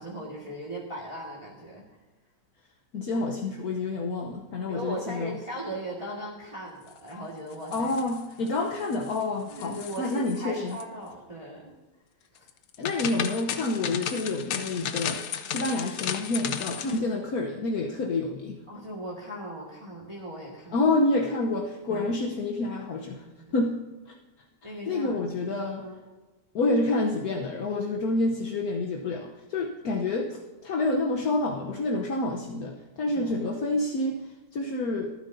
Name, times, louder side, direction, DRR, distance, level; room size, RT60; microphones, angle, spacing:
voice 1, 0.0-1.8 4.7-7.9 8.4-8.6 9.5-11.7 12.3-12.5 18.7-20.8 21.9-22.1 23.2-23.5 24.6-25.2 25.8-26.0 33.1-33.3, right 1 dB, 20° right, -3 dB, 1.6 m, -38 dB
voice 2, 2.9-5.4 7.7-10.8 12.8-18.6 20.7-23.3 23.5-23.9 24.6-25.9 26.5-34.2 34.5-35.1, left 2 dB, 65° left, 2 dB, 1.3 m, -28 dB
sound 1, 7.5-8.5 8.8-9.2 9.5-10.4 10.7-10.8 12.5-17.0, left 8 dB, 85° left, 1.5 m, -34 dB
24.0 x 9.4 x 2.7 m, 1.2 s
omnidirectional pair, 1.8 m